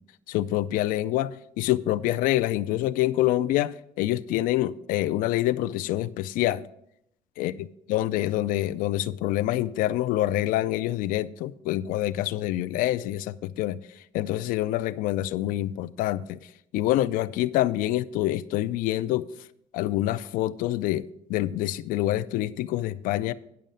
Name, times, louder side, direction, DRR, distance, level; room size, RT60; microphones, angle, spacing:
voice 1, 0.3-6.6 7.4-13.8 14.1-16.4 16.7-19.3 19.7-23.3, left 14 dB, 85° left, 0.4 m, -26 dB
10.5 x 6.4 x 5.4 m
cardioid pair, 145°, 14 cm